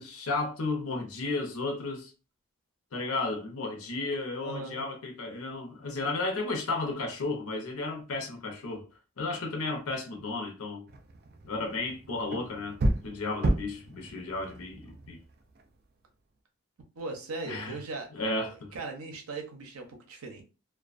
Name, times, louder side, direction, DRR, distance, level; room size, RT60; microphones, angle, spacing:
voice 1, 0.0-2.1 2.9-8.9 9.2-10.9 11.4-12.8 13.0-15.2 17.4-17.8 18.1-18.7, left 3 dB, 80° left, 0.7 m, -33 dB
voice 2, 4.4-4.8 17.0-20.4, right 3 dB, 80° right, 0.6 m, -39 dB
sound 1, 10.9-15.7, right 1 dB, 45° right, 0.3 m, -33 dB
2.3 x 2.2 x 2.4 m
head